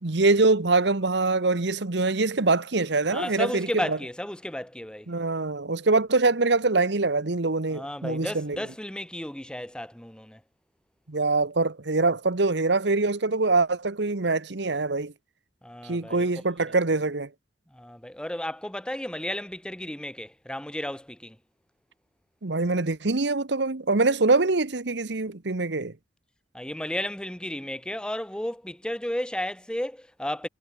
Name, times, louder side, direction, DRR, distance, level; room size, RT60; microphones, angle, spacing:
voice 1, 0.0-4.0 5.1-8.6 11.1-15.1 15.8-17.3 22.4-25.9, right 3 dB, 65° right, 1.2 m, -24 dB
voice 2, 3.1-5.1 7.7-10.4 15.6-16.3 17.7-21.4 26.5-30.5, left 1 dB, 5° left, 1.1 m, -33 dB
head